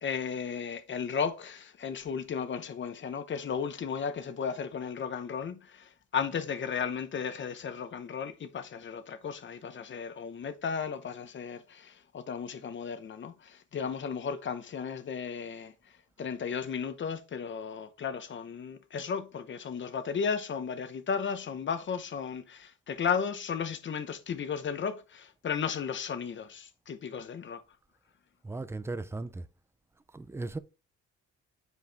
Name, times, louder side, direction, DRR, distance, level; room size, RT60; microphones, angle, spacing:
voice 1, 0.0-15.7 16.2-27.6, left 6 dB, 35° left, 0.9 m, -34 dB
voice 2, 28.4-29.4 30.1-30.6, right 2 dB, 10° right, 0.4 m, -37 dB
8.1 x 4.8 x 3.5 m
cardioid pair, 130°, 32 cm